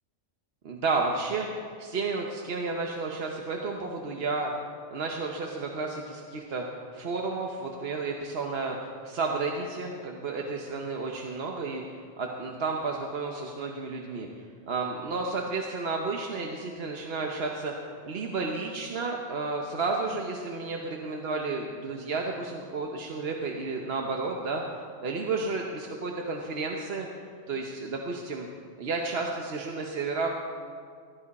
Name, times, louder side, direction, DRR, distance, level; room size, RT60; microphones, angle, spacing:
voice 1, 0.6-4.5 4.9-6.6 6.9-11.8 12.2-14.3 14.7-24.6 25.0-27.1 27.5-28.5 28.8-30.3, right 3 dB, 60° right, 1 dB, 1.1 m, -32 dB
16.0 x 11.0 x 4.1 m, 2.2 s
omnidirectional pair, 1.2 m